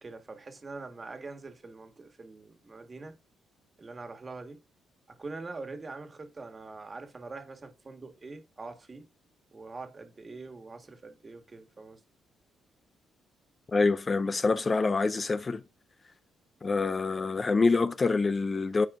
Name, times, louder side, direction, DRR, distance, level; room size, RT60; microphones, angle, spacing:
voice 1, 0.0-3.2 3.8-4.6 5.1-9.1 9.5-12.0, right 3 dB, 30° right, 1.5 m, -44 dB
voice 2, 13.7-15.6 16.6-18.9, left 3 dB, 30° left, 0.4 m, -26 dB
12.0 x 4.2 x 2.5 m
cardioid pair, 90°, 0 cm